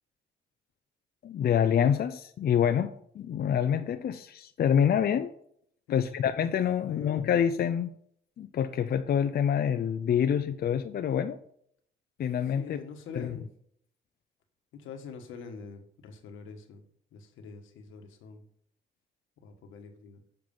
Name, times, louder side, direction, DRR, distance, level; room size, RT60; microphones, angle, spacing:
voice 1, 1.2-5.3 5.9-7.9 8.4-11.4 12.2-12.8 13.2-13.3, left 8 dB, 50° left, 9 dB, 0.6 m, -26 dB
voice 2, 6.8-7.2 10.5-10.6 12.6-13.5 14.7-16.8 17.1-18.5 19.4-20.2, left 5 dB, 85° left, 5 dB, 1.5 m, -45 dB
7.8 x 6.0 x 5.5 m, 0.66 s
cardioid pair, 90°, 20 cm